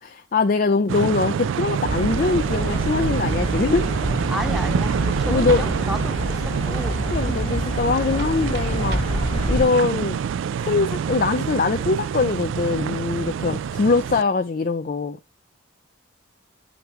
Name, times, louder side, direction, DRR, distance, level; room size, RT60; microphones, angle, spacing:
voice 1, 0.0-3.9 5.3-5.6 7.1-9.0 9.5-10.2 10.6-15.2, left 4 dB, 45° left, 0.4 m, -22 dB
sound 1, 0.9-14.2, right 7 dB, 75° right, 0.3 m, -26 dB
sound 2, 1.9-9.7, equal, 25° left, 1.5 m, -27 dB
voice 2, 4.3-7.0 7.3-7.4 9.3-9.5 13.4-13.6, equal, ahead, 0.8 m, -32 dB
sound 3, 7.7-9.8, right 3 dB, 55° right, 1.0 m, -41 dB
9.1 x 5.1 x 3.0 m
head